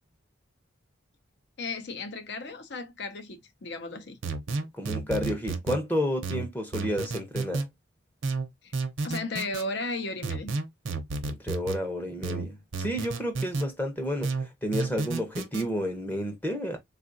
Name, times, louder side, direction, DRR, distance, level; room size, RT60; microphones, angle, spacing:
voice 1, 1.6-4.2 8.6-8.7 9.0-10.5, left 2 dB, 55° left, 0.6 m, -35 dB
sound 1, 4.2-5.8 6.2-7.7 8.2-9.7 10.2-11.8 12.2-13.7 14.2-15.7, right 3 dB, 70° right, 0.7 m, -31 dB
voice 2, 4.7-7.6 11.3-16.8, equal, 10° left, 0.7 m, -31 dB
3.7 x 2.4 x 2.5 m
head